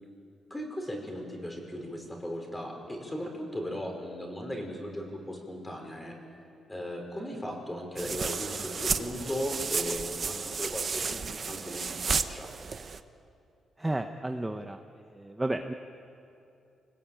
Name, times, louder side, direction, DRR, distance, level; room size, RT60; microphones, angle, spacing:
voice 1, 0.5-6.1 6.7-12.5, equal, 10° left, 2 dB, 5.1 m, -37 dB
sound 1, 8.0-13.0, right 5 dB, 40° right, 0.9 m, -32 dB
voice 2, 13.8-14.8 15.1-15.7, right 1 dB, 10° right, 5 dB, 0.9 m, -32 dB
28.5 x 20.0 x 9.0 m, 2.7 s
cardioid pair, 125°, 0 cm